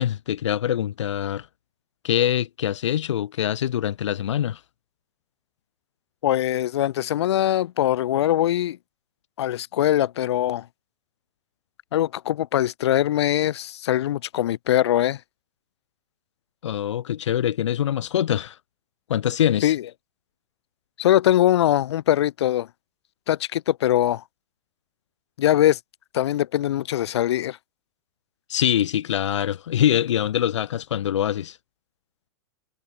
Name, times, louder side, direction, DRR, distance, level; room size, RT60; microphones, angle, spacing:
voice 1, 0.0-1.5 2.0-4.6 16.6-18.6 19.1-19.7 28.5-31.6, left 10 dB, 85° left, 6.7 m, -24 dB
voice 2, 6.2-8.8 9.4-10.6 11.9-15.2 19.6-19.8 21.0-22.7 23.3-24.2 25.4-25.8 26.1-27.6, left 12 dB, 65° left, 3.4 m, -22 dB
supercardioid pair, 170°, 15 cm